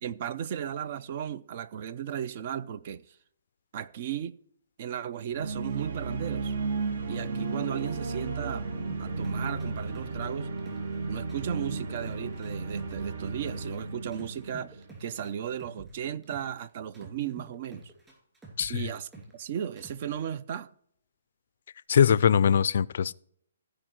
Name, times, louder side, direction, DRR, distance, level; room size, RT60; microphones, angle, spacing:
voice 1, 0.0-3.2 3.7-4.4 4.8-6.6 7.1-8.7 9.0-10.5 11.1-17.9 18.7-20.7, right 9 dB, 40° right, 0.5 m, -35 dB
sound 1, 5.3-15.4, right 3 dB, 55° right, 1.3 m, -34 dB
sound 2, 8.9-11.0 11.3-13.8 14.1-16.6 16.9-19.4 19.8-20.1, right 3 dB, 10° right, 2.6 m, -49 dB
voice 2, 18.6-18.9 21.9-23.1, left 8 dB, 55° left, 0.4 m, -22 dB
15.0 x 5.0 x 4.5 m
hypercardioid pair, 160°, 0 cm